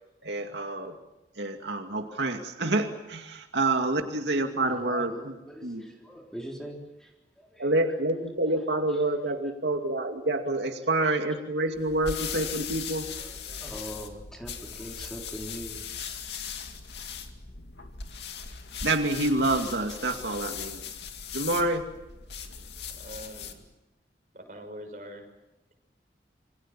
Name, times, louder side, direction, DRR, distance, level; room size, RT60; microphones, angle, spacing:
voice 1, 0.2-0.9 1.4-5.3 5.6-5.9 7.6-13.1 18.8-20.8 21.3-21.8, right 2 dB, 85° right, 4 dB, 2.4 m, -27 dB
voice 2, 4.6-7.1 7.4-7.7 8.5-8.6 8.9-9.0 10.9-11.1 13.1-16.2, equal, 5° left, 0 dB, 3.8 m, -42 dB
sound 1, 11.7-23.6, left 7 dB, 80° left, 2.4 m, -39 dB
voice 3, 22.9-23.6 24.3-25.2, equal, 45° right, 4 dB, 5.9 m, -44 dB
27.5 x 24.0 x 7.5 m, 0.99 s
head